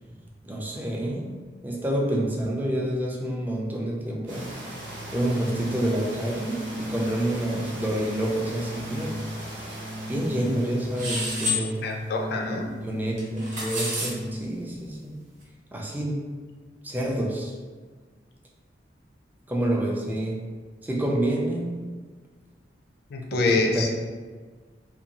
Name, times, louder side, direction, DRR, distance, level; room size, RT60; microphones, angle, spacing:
voice 1, 0.4-1.3 1.6-4.6 5.1-9.2 10.1-11.8 12.8-15.2 15.7-16.2 16.8-17.5 19.5-20.4 20.8-21.8 23.5-23.9, right 1 dB, 10° right, -2 dB, 0.3 m, -28 dB
Organ, 4.3-14.6, equal, 65° right, 0.5 m, -37 dB
sound 1, 4.3-12.2, right 1 dB, 85° right, 0.8 m, -41 dB
sound 2, 11.0-11.6 13.2-14.1, left 2 dB, 45° right, 0.9 m, -28 dB
voice 2, 11.8-12.8 23.1-23.9, left 3 dB, 60° left, 1 dB, 0.4 m, -25 dB
2.6 x 2.2 x 2.8 m, 1.5 s
head